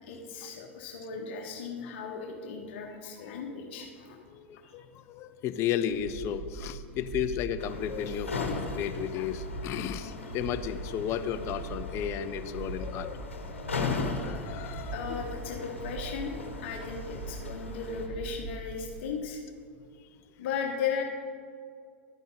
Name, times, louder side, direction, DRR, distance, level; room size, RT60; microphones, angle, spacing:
voice 1, 0.1-4.2 4.6-4.8 14.9-16.3 16.6-19.4 20.4-21.0, left 6 dB, 65° left, 1 dB, 1.1 m, -36 dB
voice 2, 4.3-13.2 13.5-15.3 16.4-16.5, left 9 dB, 45° left, 12 dB, 0.6 m, -34 dB
sound 1, 5.9-19.0, right 4 dB, 70° right, 2.9 m, -42 dB
sound 2, 7.6-18.1, left 4 dB, 85° left, 1.1 m, -38 dB
11.0 x 9.2 x 3.9 m, 2.2 s
hypercardioid pair, 90°, 7 cm